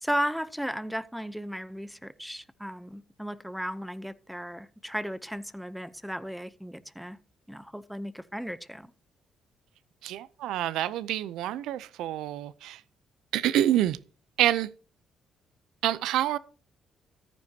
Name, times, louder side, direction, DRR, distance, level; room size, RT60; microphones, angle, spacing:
voice 1, 0.0-7.2 7.5-8.9, equal, ahead, 0.7 m, -35 dB
voice 2, 10.0-12.8 13.3-14.0 14.4-14.7 15.8-16.4, right 12 dB, 90° right, 0.6 m, -27 dB
13.5 x 9.7 x 2.8 m
cardioid pair, 90°, 0 cm